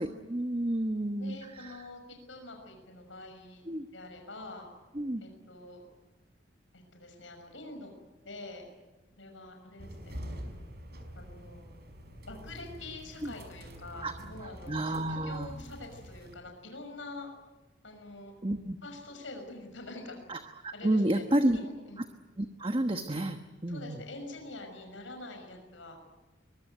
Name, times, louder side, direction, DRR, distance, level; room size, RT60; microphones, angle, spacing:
voice 1, 0.0-1.8 3.7-3.9 4.9-5.2 13.2-13.3 14.0-14.1 14.4-15.5 18.4-18.8 20.3-21.6 22.0-22.1 22.4-24.0, right 1 dB, 30° right, 7 dB, 1.2 m, -31 dB
voice 2, 1.2-2.0 2.3-3.6 3.9-4.7 5.2-5.8 6.7-7.9 8.2-8.7 9.2-10.2 11.1-11.7 12.3-17.3 17.8-18.3 18.8-20.2 20.7-21.2 21.5-22.0 23.7-26.0, left 2 dB, 90° left, 4 dB, 6.0 m, -45 dB
sound 1, 9.8-16.4, equal, 55° right, 5.2 m, -46 dB
24.0 x 23.0 x 9.2 m, 1.2 s
head